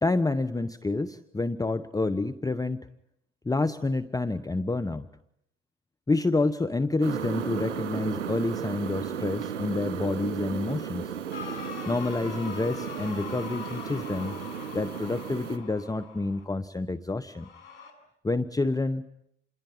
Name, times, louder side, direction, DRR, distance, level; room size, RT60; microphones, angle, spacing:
voice 1, 0.0-2.9 3.4-5.1 6.1-11.1 11.9-14.4 14.7-17.5 18.2-19.1, left 3 dB, 10° left, 11 dB, 1.1 m, -28 dB
sound 1, 7.0-15.6, right 8 dB, 85° right, 3.1 m, -35 dB
sound 2, 11.3-16.4 17.3-17.9, left 6 dB, 80° left, 6.8 m, -42 dB
28.0 x 22.0 x 9.4 m, 0.75 s
hypercardioid pair, 80°, 35 cm